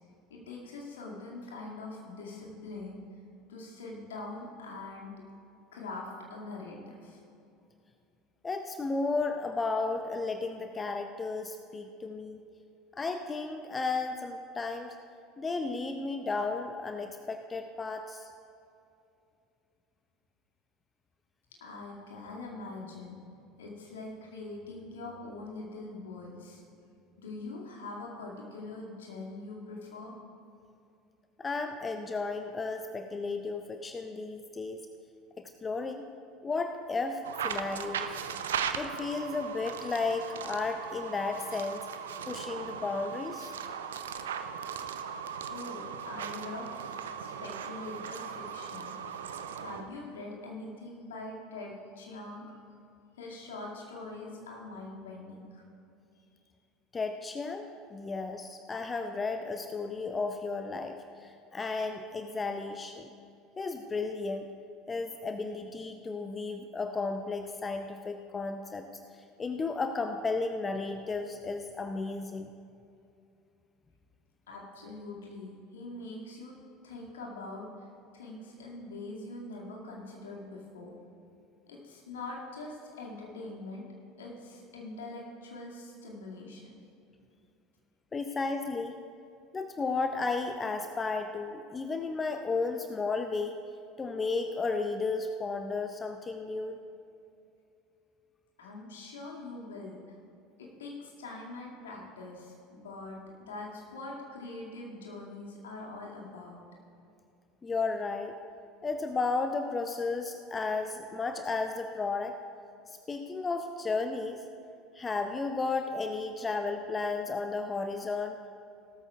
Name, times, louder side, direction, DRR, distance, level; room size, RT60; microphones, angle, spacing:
voice 1, 0.3-3.0 3.5-5.1 5.7-7.2 21.6-26.6 27.2-30.1 45.5-48.9 49.6-52.4 53.2-55.6 74.5-76.5 76.8-77.9 78.1-80.9 81.7-83.9 84.2-86.7 98.6-100.0 100.6-106.6, left 2 dB, 70° left, -3 dB, 2.2 m, -43 dB
voice 2, 8.4-12.4 13.0-14.9 15.4-18.3 31.4-34.8 35.4-36.1 36.4-38.2 38.8-41.8 42.3-43.5 56.9-63.1 63.6-64.5 64.9-68.8 69.4-72.5 88.1-88.9 89.5-93.6 94.0-96.8 107.6-108.3 108.8-112.4 112.9-114.4 114.9-118.4, left 3 dB, 20° left, 6 dB, 0.6 m, -33 dB
sound 1, 37.2-49.9, right 7 dB, 70° right, 0.5 m, -38 dB
18.0 x 13.5 x 2.4 m, 2.6 s
figure-of-eight pair, 70°, 0 cm